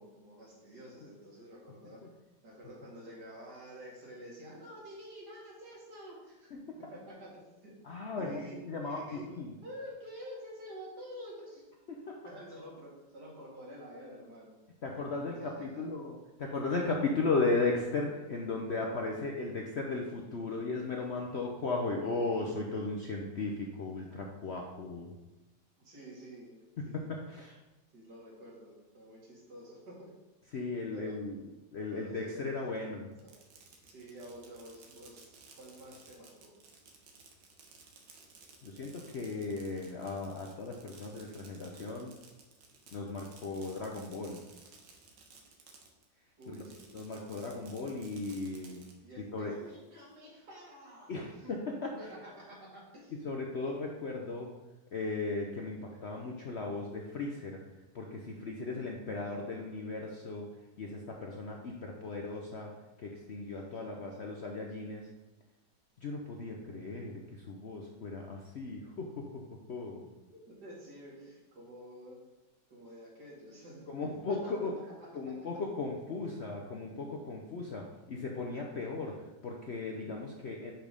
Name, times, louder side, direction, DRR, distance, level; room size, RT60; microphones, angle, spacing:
voice 1, 0.0-2.0 2.4-6.5 6.9-8.6 8.8-9.3 9.6-11.6 12.2-14.5 15.3-15.8 25.8-26.6 26.8-27.1 27.9-30.1 30.9-31.1 31.9-32.5 33.2-33.4 33.7-36.5 46.4-46.9 49.0-51.5 51.9-53.1 70.3-72.2 72.7-73.8 74.4-74.5, equal, 65° right, -4 dB, 2.7 m, -49 dB
voice 2, 6.5-6.9 7.8-9.0 9.4-9.5 11.9-12.2 14.8-25.1 27.1-27.6 30.5-31.4 31.7-33.1 38.6-42.2 42.9-44.4 46.9-48.8 49.3-49.5 51.1-52.0 53.2-54.5 54.9-57.6 57.9-60.5 60.8-65.1 66.0-70.1 73.9-74.7 75.1-80.7, left 3 dB, 55° left, 0 dB, 0.7 m, -36 dB
Fireworks, 33.1-46.1 46.4-48.9, right 4 dB, 90° right, 1.7 m, -57 dB
6.0 x 5.1 x 5.2 m, 1.1 s
omnidirectional pair, 1.9 m